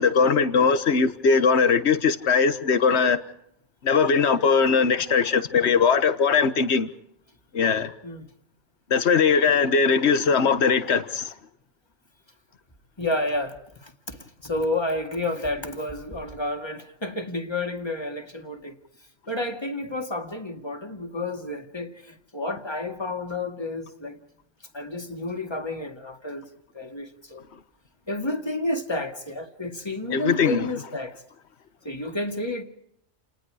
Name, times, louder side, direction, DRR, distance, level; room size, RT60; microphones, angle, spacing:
voice 1, 0.0-3.2 3.8-6.9 7.5-7.9 8.9-11.3 30.1-30.7, left 5 dB, 65° left, 1.5 m, -20 dB
voice 2, 13.0-13.6 13.8-18.7 19.3-24.2 24.7-26.5 26.7-27.4 28.1-31.1 31.8-32.6, left 2 dB, 20° left, 2.2 m, -30 dB
30.0 x 19.5 x 4.9 m
omnidirectional pair, 1.2 m